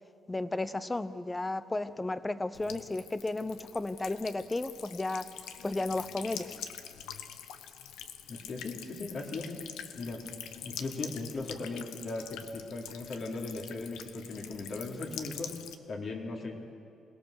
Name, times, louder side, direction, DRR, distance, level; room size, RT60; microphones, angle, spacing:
voice 1, 0.3-5.3 5.6-6.6, left 2 dB, 15° left, 14 dB, 0.8 m, -33 dB
Buzz / Water tap faucet / Trickle dribble, 2.5-15.8, left 9 dB, 90° left, 1.1 m, -45 dB
voice 2, 8.3-9.5 9.9-10.2 10.6-15.5 15.9-16.6, left 3 dB, 55° left, -1 dB, 3.6 m, -38 dB
27.0 x 18.0 x 6.7 m, 2.4 s
cardioid pair, 90°, 0 cm